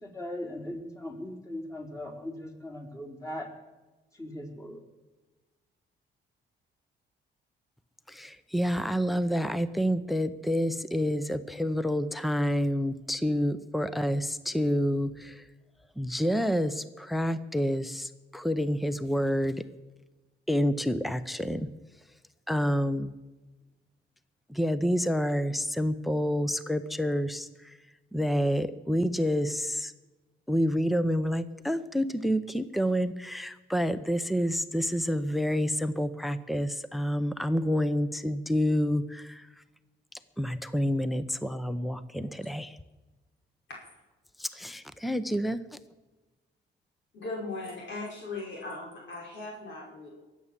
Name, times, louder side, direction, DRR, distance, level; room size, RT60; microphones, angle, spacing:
voice 1, 0.0-3.5 4.1-4.8, left 1 dB, 15° left, 0 dB, 4.0 m, -39 dB
voice 2, 8.1-15.5 16.0-19.6 20.5-21.7 22.5-23.2 24.5-27.8 28.1-29.9 30.5-39.6 40.4-42.8 44.4-45.6, equal, ahead, 13 dB, 0.8 m, -28 dB
voice 3, 47.1-50.1, left 3 dB, 70° left, -3 dB, 5.5 m, -38 dB
22.0 x 8.4 x 7.5 m, 1.2 s
cardioid pair, 90°, 20 cm